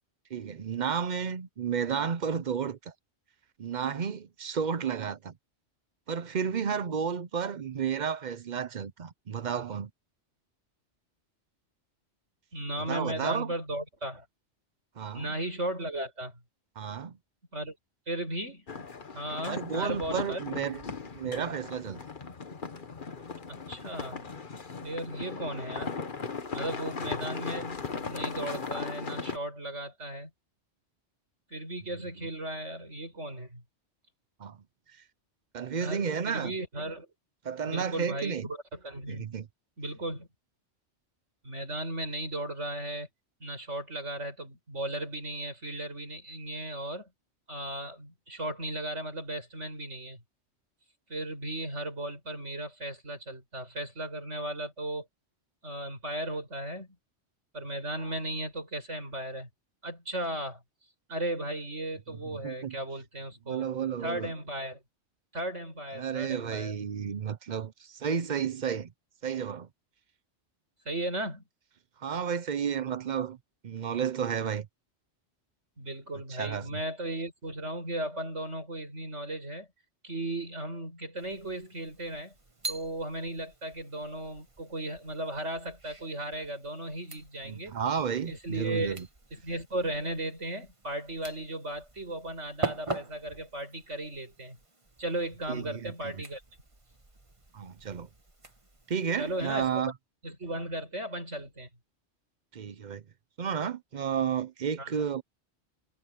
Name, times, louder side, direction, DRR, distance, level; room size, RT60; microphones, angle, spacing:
voice 1, 0.3-2.9 3.6-5.3 6.1-9.9 12.8-13.5 15.0-15.4 16.8-17.2 19.5-20.8 21.1-22.0 32.2-32.3 34.4-34.6 35.5-36.5 37.4-38.5 39.1-39.5 62.2-62.8 63.5-64.3 66.0-68.9 69.2-69.7 72.0-73.4 73.6-74.7 76.3-76.8 87.4-89.1 95.5-96.2 97.5-98.1 98.9-99.9 102.5-103.0 103.4-105.2, right 7 dB, 45° right, 0.8 m, -32 dB
voice 2, 12.5-14.3 15.1-16.4 17.5-17.8 18.1-18.7 19.1-20.4 23.7-24.2 24.8-25.9 26.5-30.3 31.5-33.6 35.8-37.1 37.6-39.3 39.8-40.3 41.4-43.1 43.4-47.1 47.5-50.2 51.1-55.1 55.6-56.9 57.5-59.5 59.8-60.6 61.1-63.7 64.0-64.8 65.3-66.8 70.8-71.4 75.8-79.7 80.0-82.3 82.7-87.8 88.3-89.0 89.3-94.6 95.0-96.4 99.2-99.8 100.2-101.7 104.8-104.9, right 1 dB, 85° right, 7.8 m, -36 dB
sound 1, 18.7-29.4, left 4 dB, 45° left, 1.4 m, -38 dB
sound 2, 81.2-99.8, right 3 dB, 25° right, 1.8 m, -44 dB
omnidirectional pair, 1.2 m